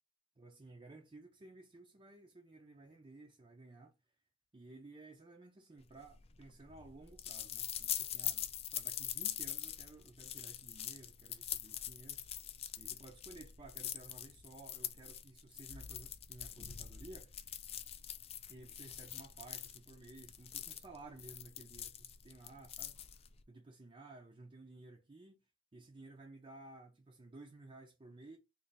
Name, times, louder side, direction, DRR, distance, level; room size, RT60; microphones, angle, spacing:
voice 1, 0.4-3.9 4.5-12.2 12.8-17.4 18.5-22.9 23.5-25.4 25.7-28.4, right 2 dB, 30° right, 0.5 m, -55 dB
sound 1, 6.0-23.4, left 10 dB, 30° left, 0.3 m, -43 dB
3.2 x 2.5 x 3.9 m
head